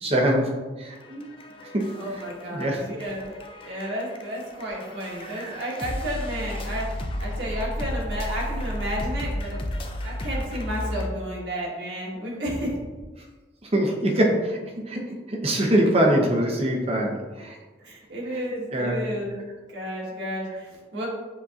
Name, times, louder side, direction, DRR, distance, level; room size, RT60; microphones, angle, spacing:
voice 1, 0.0-1.2 1.7-1.9 2.5-2.8 3.8-3.9 5.3-5.6 13.7-14.6 14.9-17.6 18.7-19.0, right 1 dB, 35° right, 0 dB, 0.8 m, -24 dB
sound 1, 0.9-11.1, left 1 dB, 30° left, 0.4 m, -33 dB
voice 2, 1.9-3.3 3.6-6.8 7.2-9.6 10.0-12.8 17.8-19.4 19.7-21.1, equal, 75° right, -4 dB, 1.4 m, -32 dB
7.3 x 2.8 x 2.4 m, 1.3 s
head